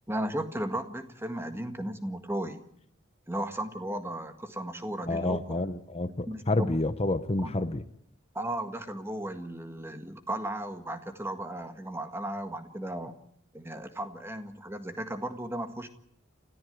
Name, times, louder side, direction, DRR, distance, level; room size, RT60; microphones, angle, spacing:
voice 1, 0.1-2.6 3.3-5.6 6.3-6.7 7.4-7.7 8.4-13.1 13.5-15.9, right 1 dB, 15° right, 7 dB, 1.8 m, -35 dB
voice 2, 5.1-7.8, left 2 dB, 30° left, 11 dB, 0.8 m, -29 dB
29.0 x 14.5 x 8.1 m, 0.70 s
head